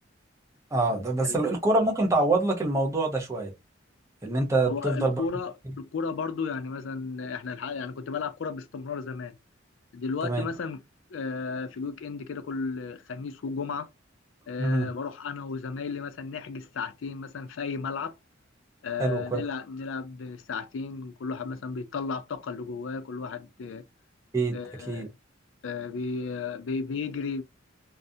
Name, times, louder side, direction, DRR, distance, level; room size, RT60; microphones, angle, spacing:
voice 1, 0.7-3.5 4.2-5.2 10.2-10.5 14.6-14.9 19.0-19.4 24.3-24.6 24.9-25.1, right 2 dB, 15° right, 0.8 m, -25 dB
voice 2, 4.7-9.4 9.9-10.8 11.1-13.9 14.5-18.2 18.8-23.8 24.5-25.1 25.6-27.4, left 5 dB, 80° left, 0.4 m, -34 dB
2.3 x 2.0 x 2.7 m
head